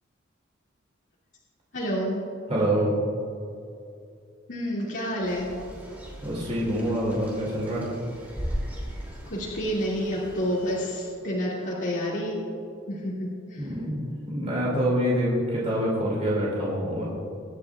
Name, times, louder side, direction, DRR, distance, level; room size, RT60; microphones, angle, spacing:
voice 1, 1.7-2.2 4.5-5.5 9.3-12.4 12.9-13.7, equal, 60° left, -8 dB, 2.5 m, -29 dB
voice 2, 2.5-2.9 6.2-7.9 13.6-17.1, equal, 35° right, -6 dB, 2.6 m, -26 dB
sound 1, 5.2-10.8, equal, 10° right, 2.9 m, -38 dB
25.0 x 9.6 x 2.5 m, 2.6 s
head